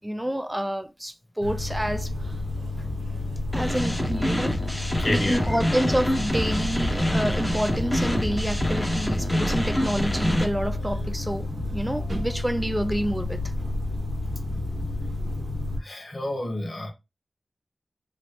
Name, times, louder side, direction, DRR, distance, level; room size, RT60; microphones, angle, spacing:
voice 1, 0.0-2.1 3.5-13.4, equal, 10° right, 0.3 m, -28 dB
sound 1, 1.4-15.8, left 2 dB, 80° right, 0.9 m, -30 dB
sound 2, 3.5-10.4, equal, 10° left, 0.7 m, -27 dB
voice 2, 5.0-5.6 15.8-16.9, left 1 dB, 45° left, 1.3 m, -29 dB
3.1 x 2.6 x 2.9 m
wide cardioid pair, 85°, 0 cm